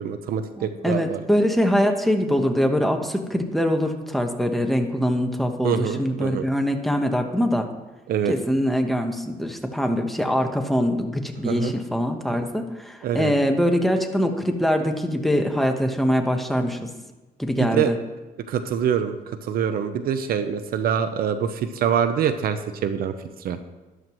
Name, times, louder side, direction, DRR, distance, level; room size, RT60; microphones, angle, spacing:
voice 1, 0.0-1.2 5.6-6.4 8.1-8.3 11.4-11.7 13.0-13.3 17.6-17.9 18.5-19.2 19.4-23.1 23.4-23.6, right 8 dB, 60° right, 10 dB, 0.8 m, -25 dB
voice 2, 0.6-7.7 8.3-16.9 17.4-18.0, equal, ahead, 5 dB, 1.2 m, -23 dB
12.5 x 11.5 x 3.1 m, 1.1 s
cardioid pair, 110°, 17 cm